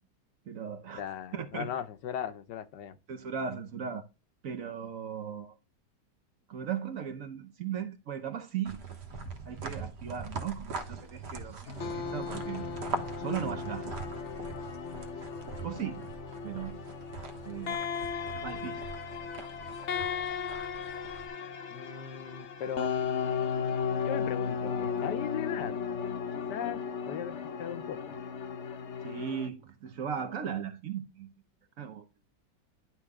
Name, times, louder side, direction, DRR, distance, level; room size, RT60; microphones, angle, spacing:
voice 1, 0.5-1.1 1.3-1.7 3.1-4.0 4.4-5.5 6.5-8.8 9.5-12.7 13.2-13.9 15.6-16.1 16.4-16.8 17.4-17.9 18.3-18.9 29.0-31.3 31.8-32.0, right 8 dB, 55° right, 1.2 m, -37 dB
voice 2, 1.0-3.0 21.7-22.9 24.0-25.7 26.5-26.8 27.1-28.2, left 9 dB, 75° left, 1.4 m, -37 dB
sound 1, 8.7-21.3, right 4 dB, 70° right, 1.8 m, -42 dB
sound 2, 11.7-29.5, left 6 dB, 50° left, 1.0 m, -35 dB
11.0 x 3.8 x 3.6 m
omnidirectional pair, 1.9 m